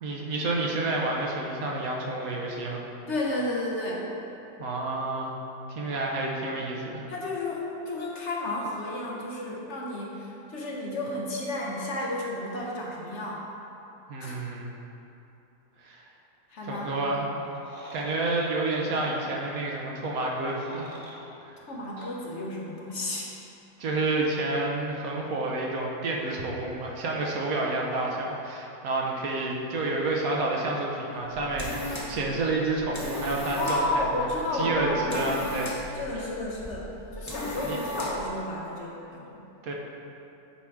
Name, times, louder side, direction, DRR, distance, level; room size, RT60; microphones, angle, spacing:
voice 1, 0.0-2.8 4.6-5.4 5.7-7.0 14.1-14.7 15.8-16.1 16.7-17.2 17.9-20.9 21.5-21.6 23.8-34.3 34.5-35.7 37.6-37.8 39.6-39.7, right 2 dB, 70° right, -2 dB, 1.2 m, -29 dB
voice 2, 3.1-4.1 7.1-13.5 14.2-14.3 16.5-17.3 21.6-23.3 33.6-35.4 35.9-39.4, left 1 dB, 55° left, -3 dB, 1.0 m, -32 dB
sound 1, 17.4-18.1 18.9-19.1 20.3-21.2 22.0-22.1, right 1 dB, 30° right, 0.8 m, -46 dB
sound 2, 31.2-38.4, left 1 dB, 20° left, 0.5 m, -37 dB
8.5 x 3.6 x 4.5 m, 2.9 s
omnidirectional pair, 1.6 m